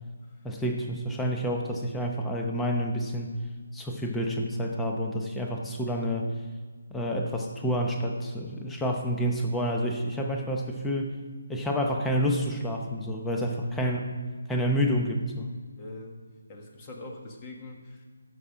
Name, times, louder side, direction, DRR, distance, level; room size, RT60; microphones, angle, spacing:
voice 1, 0.4-3.4 3.7-6.3 6.9-11.2 11.5-14.0 14.5-15.5, equal, 5° left, 1 dB, 0.9 m, -29 dB
voice 2, 15.8-16.2 16.5-18.0, left 2 dB, 25° left, 1 dB, 1.5 m, -43 dB
15.0 x 6.6 x 4.9 m, 1.5 s
figure-of-eight pair, 160°, 0 cm